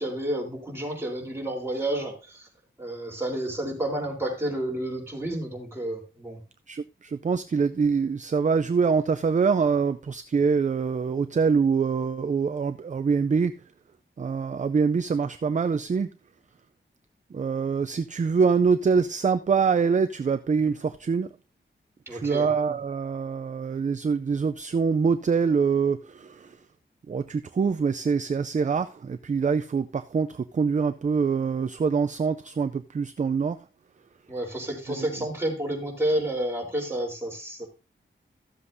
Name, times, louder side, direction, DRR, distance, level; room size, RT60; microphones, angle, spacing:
voice 1, 0.0-2.5 2.8-6.4 22.1-22.5 34.3-37.7, right 1 dB, 10° right, 3.7 m, -30 dB
voice 2, 6.7-13.5 14.2-16.1 17.3-21.3 22.1-26.6 27.1-33.6 35.0-35.1, right 5 dB, 40° right, 0.4 m, -24 dB
14.0 x 7.5 x 2.7 m
wide cardioid pair, 100°, 20 cm